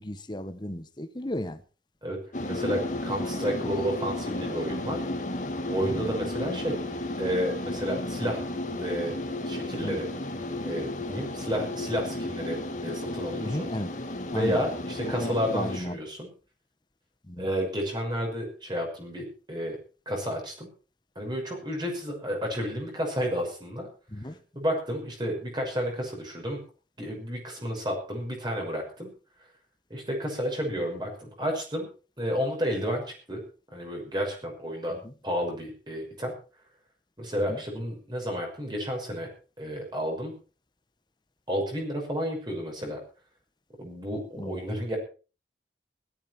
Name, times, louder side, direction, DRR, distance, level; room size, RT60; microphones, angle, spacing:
voice 1, 0.0-1.6 5.8-6.0 9.8-10.0 11.1-11.2 13.4-13.9 14.3-14.6 15.0-16.0 17.3-17.5 24.1-24.4 35.0-35.1 37.5-37.6 44.4-44.6, left 1 dB, 25° left, 1.2 m, -34 dB
sound 1, 2.3-15.8, left 1 dB, 45° left, 2.2 m, -33 dB
voice 2, 2.5-5.0 5.7-6.8 7.2-8.5 8.8-9.1 9.5-10.1 10.6-13.7 14.3-16.3 17.4-19.8 20.1-20.7 21.2-23.9 24.5-26.6 27.0-29.1 29.9-31.9 32.2-33.4 33.7-35.0 35.2-36.3 37.2-39.3 39.6-40.3 41.5-43.0 43.8-45.0, equal, 25° right, 6.0 m, -31 dB
17.5 x 13.0 x 4.5 m
head